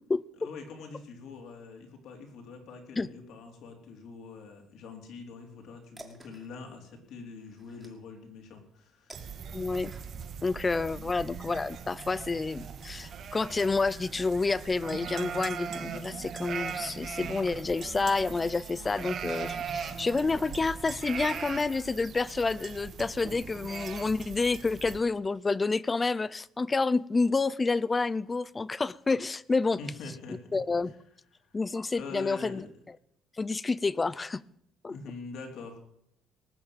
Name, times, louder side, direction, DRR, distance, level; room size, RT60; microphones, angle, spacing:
voice 1, 0.4-9.2 10.9-11.3 29.8-30.4 30.8-31.0 31.3-31.6 31.9-32.7 34.9-35.8, left 4 dB, 65° left, 3.7 m, -44 dB
sound 1, 5.4-10.4, right 2 dB, 10° right, 2.3 m, -54 dB
sound 2, 9.1-25.0, right 7 dB, 45° right, 1.6 m, -40 dB
voice 2, 9.5-9.9 10.4-29.8 30.5-30.9 31.5-32.6 33.4-34.4 34.8-34.9, left 3 dB, 20° left, 0.5 m, -29 dB
19.0 x 7.0 x 8.8 m
cardioid pair, 145°, 0 cm